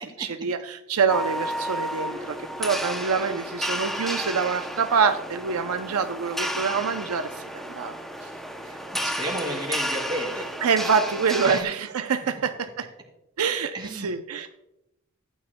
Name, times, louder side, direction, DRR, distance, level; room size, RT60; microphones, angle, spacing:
voice 1, 0.2-7.9 8.2-8.3 10.6-12.8 13.4-14.5, right 6 dB, 80° right, 7 dB, 0.6 m, -26 dB
sound 1, 1.1-11.6, equal, ahead, 0.6 m, -32 dB
voice 2, 8.6-10.5 11.4-11.7 13.7-14.1, right 1 dB, 20° right, 0 dB, 2.2 m, -33 dB
14.5 x 9.3 x 2.2 m, 0.86 s
head